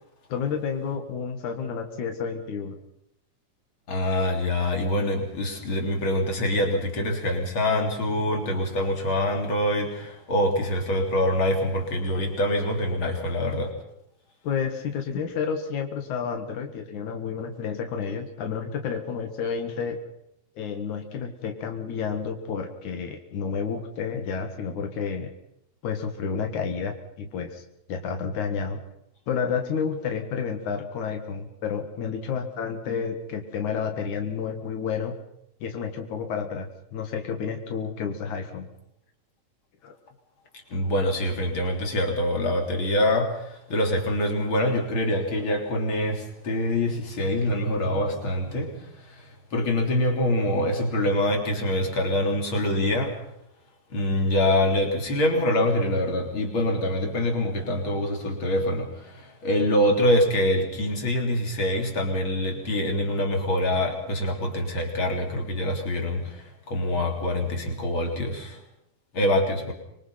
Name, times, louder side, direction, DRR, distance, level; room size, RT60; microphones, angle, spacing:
voice 1, 0.3-2.8 14.4-20.0 20.6-25.3 25.8-27.6 27.9-28.8 29.3-35.1 35.6-38.7 39.8-39.9, left 6 dB, 85° left, 4 dB, 3.2 m, -30 dB
voice 2, 3.9-13.7 40.7-53.2 53.9-68.6 69.1-69.7, left 1 dB, 45° left, 3 dB, 4.3 m, -25 dB
25.5 x 23.0 x 5.8 m, 0.78 s
omnidirectional pair, 3.3 m